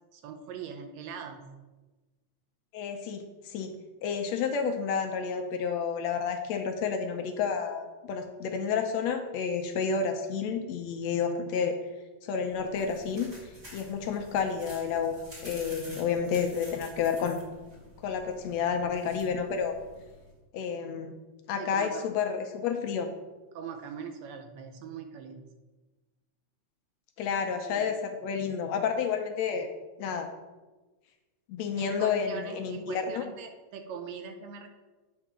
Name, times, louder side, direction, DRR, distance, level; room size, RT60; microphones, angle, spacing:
voice 1, 0.1-1.5 21.6-22.1 23.5-25.4 27.6-27.9 31.8-34.7, right 6 dB, 75° right, 6 dB, 1.8 m, -41 dB
voice 2, 2.7-3.7 4.0-11.8 12.2-15.2 15.4-17.4 18.0-19.8 20.5-21.2 21.5-23.1 27.2-29.7 30.0-30.3 31.5-33.3, left 6 dB, 75° left, 5 dB, 1.8 m, -30 dB
sound 1, 12.4-20.3, equal, 15° right, 2.8 m, -49 dB
8.8 x 4.6 x 6.0 m, 1.2 s
omnidirectional pair, 3.3 m